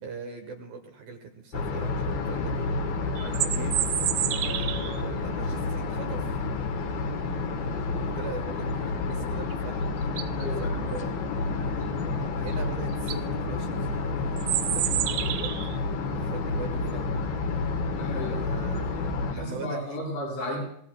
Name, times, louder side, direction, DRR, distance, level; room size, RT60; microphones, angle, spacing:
voice 1, 0.0-2.8 3.3-3.9 4.4-6.3 7.9-11.1 12.4-15.8 16.1-17.1 18.3-19.0 19.3-20.0, right 5 dB, 70° right, 4 dB, 2.4 m, -41 dB
sound 1, 1.5-19.3, left 3 dB, 65° left, 3.0 m, -30 dB
sound 2, 3.2-5.0 9.5-9.6 10.0-10.4 12.5-12.6 12.9-13.2 14.4-15.8, right 13 dB, 90° right, 2.1 m, -29 dB
voice 2, 10.4-10.8 18.0-18.4 19.3-20.6, left 1 dB, 85° left, -4 dB, 8.6 m, -34 dB
24.5 x 17.5 x 2.3 m, 0.69 s
omnidirectional pair, 5.1 m